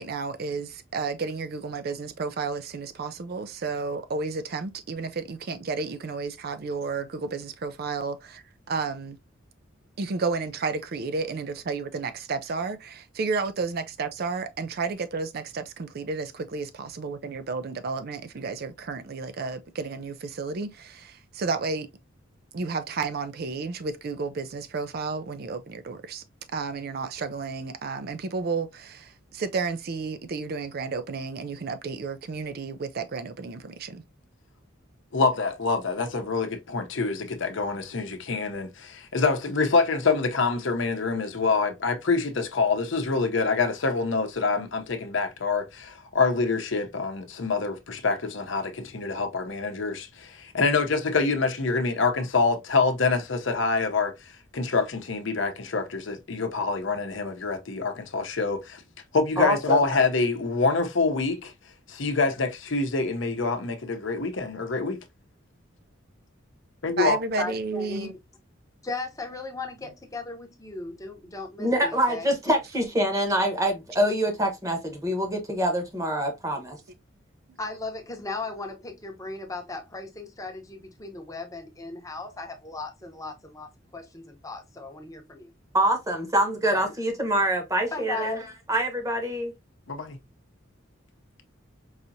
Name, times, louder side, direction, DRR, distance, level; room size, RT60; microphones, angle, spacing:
voice 1, 0.0-9.2 10.0-21.9 22.5-26.2 26.5-34.0 67.0-68.1, right 4 dB, 50° right, 0.4 m, -32 dB
voice 2, 35.1-54.1 54.5-58.8 59.1-61.5 61.9-65.0 66.8-67.2 89.9-90.2, left 4 dB, 65° left, 0.7 m, -26 dB
voice 3, 59.4-59.8 71.6-76.8 85.7-88.4 88.7-89.5, right 1 dB, 15° right, 1.0 m, -25 dB
voice 4, 67.4-68.1 68.8-72.3 77.6-85.5 86.7-86.9 87.9-88.5, left 3 dB, 15° left, 0.8 m, -37 dB
4.7 x 2.8 x 2.6 m
head